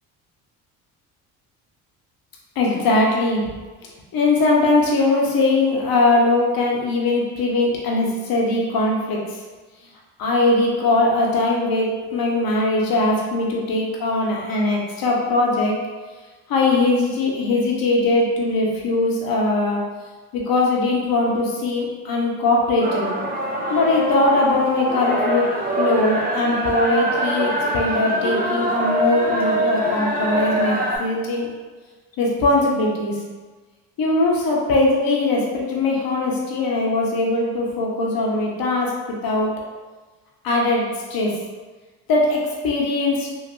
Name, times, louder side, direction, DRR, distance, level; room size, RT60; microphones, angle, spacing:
voice 1, 2.6-3.4 4.1-9.2 10.2-15.7 16.5-19.8 20.3-23.1 23.7-31.5 32.2-33.2 34.0-38.9 39.2-39.5 40.4-41.3 42.1-43.3, left 2 dB, 55° left, -2 dB, 0.9 m, -20 dB
sound 1, 22.8-31.0, equal, 20° right, 0.6 m, -23 dB
3.0 x 2.1 x 3.1 m, 1.3 s
supercardioid pair, 70°, 42 cm